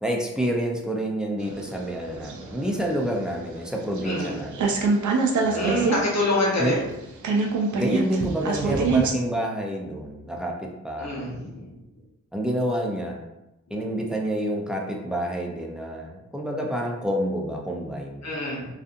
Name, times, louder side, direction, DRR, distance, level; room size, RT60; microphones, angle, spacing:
voice 1, 0.0-4.8 5.4-5.9 6.6-6.8 7.7-11.4 12.3-13.2 13.7-18.3, equal, 5° right, 0 dB, 0.5 m, -28 dB
sound 1, 1.4-4.3 4.5-6.0 6.3-6.4 6.6-9.1, right 4 dB, 80° right, 0.5 m, -25 dB
voice 2, 4.0-4.4 5.5-6.8 11.0-11.6 18.2-18.7, left 1 dB, 65° left, -4 dB, 1.0 m, -26 dB
2.6 x 2.4 x 2.5 m, 0.93 s
cardioid pair, 60°, 29 cm